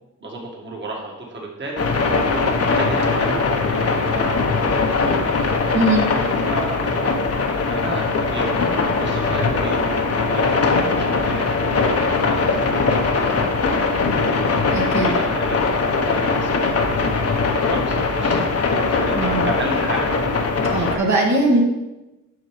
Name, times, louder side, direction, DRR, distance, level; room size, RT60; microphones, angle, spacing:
voice 1, 0.2-2.2 2.6-5.5 6.5-7.0 7.7-11.6 11.9-13.4 14.6-21.0, right 2 dB, 35° right, -1 dB, 1.7 m, -33 dB
sound 1, 1.8-21.0, left 4 dB, 45° left, 1.0 m, -20 dB
voice 2, 5.7-6.1 14.7-15.2 19.1-19.5 20.7-21.6, right 2 dB, 55° right, -2 dB, 1.6 m, -20 dB
9.1 x 6.0 x 3.2 m, 1.0 s
cardioid pair, 75°, 33 cm